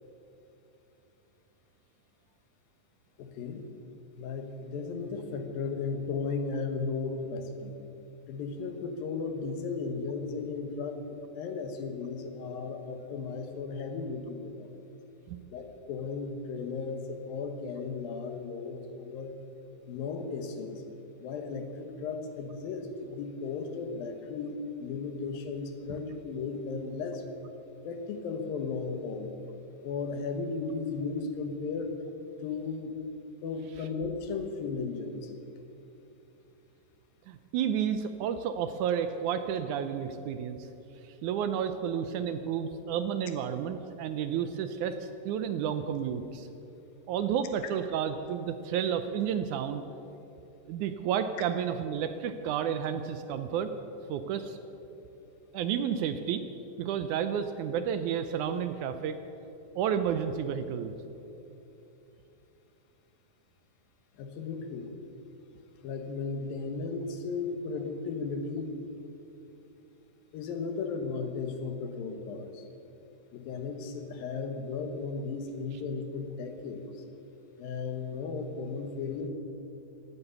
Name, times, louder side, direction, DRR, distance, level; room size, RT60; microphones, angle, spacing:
voice 1, 3.2-3.6 4.2-7.8 8.3-14.7 15.5-19.4 19.9-20.8 21.2-27.2 27.8-29.3 29.8-32.0 32.4-33.0 33.4-35.3 64.2-64.9 65.8-68.8 70.3-72.7 73.3-76.9 77.6-79.3, left 4 dB, 85° left, 6 dB, 3.1 m, -35 dB
voice 2, 37.3-40.7 41.0-46.5 47.1-49.8 50.7-53.7 54.1-54.6 55.5-56.4 56.8-59.2 59.8-60.9, right 8 dB, 80° right, 9 dB, 1.8 m, -31 dB
17.0 x 9.7 x 8.2 m, 2.9 s
omnidirectional pair, 4.1 m